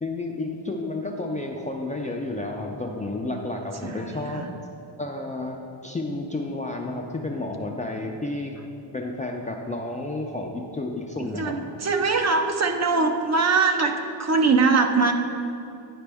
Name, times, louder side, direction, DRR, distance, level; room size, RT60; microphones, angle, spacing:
voice 1, 0.0-4.5 5.0-5.6 5.8-8.5 8.9-11.6, left 2 dB, 15° left, 0 dB, 0.4 m, -31 dB
voice 2, 3.8-4.5 11.2-13.9 14.2-15.1, right 4 dB, 35° right, 5 dB, 0.5 m, -22 dB
9.6 x 5.0 x 3.4 m, 2.6 s
cardioid pair, 110°, 48 cm